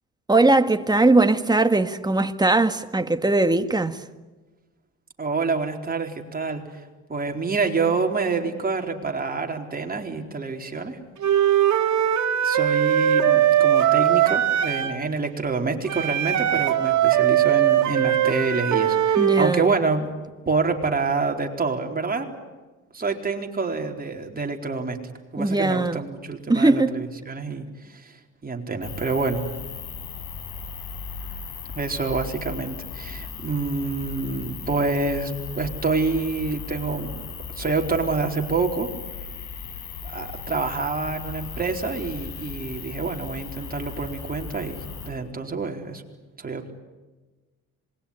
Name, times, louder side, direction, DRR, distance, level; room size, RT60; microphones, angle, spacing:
voice 1, 0.3-4.0 19.2-19.7 25.4-26.0 26.5-27.0, right 2 dB, 15° right, 1.7 m, -20 dB
voice 2, 5.2-6.6 7.1-11.0 12.4-20.1 20.5-22.3 22.9-25.0 25.3-28.1 28.4-29.4 31.7-37.2 37.6-38.9 40.0-46.0 46.4-46.7, right 4 dB, 30° right, 4.2 m, -27 dB
Wind instrument woodwind instrument, 11.2-15.0 15.9-19.5, right 10 dB, 70° right, 2.7 m, -20 dB
sound 1, 28.8-45.1, left 6 dB, 90° left, 5.8 m, -37 dB
26.5 x 21.5 x 10.0 m
cardioid pair, 90°, 30 cm